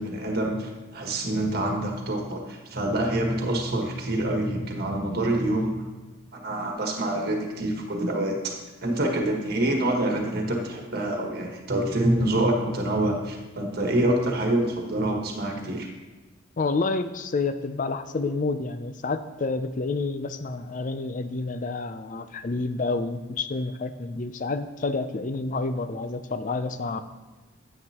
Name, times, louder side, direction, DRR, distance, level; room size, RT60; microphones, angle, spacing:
voice 1, 0.0-5.7 6.3-8.6 8.8-15.9, right 1 dB, 50° right, 1 dB, 1.5 m, -26 dB
voice 2, 16.6-27.0, left 3 dB, 40° left, 11 dB, 0.5 m, -29 dB
9.7 x 9.3 x 2.9 m, 1.3 s
head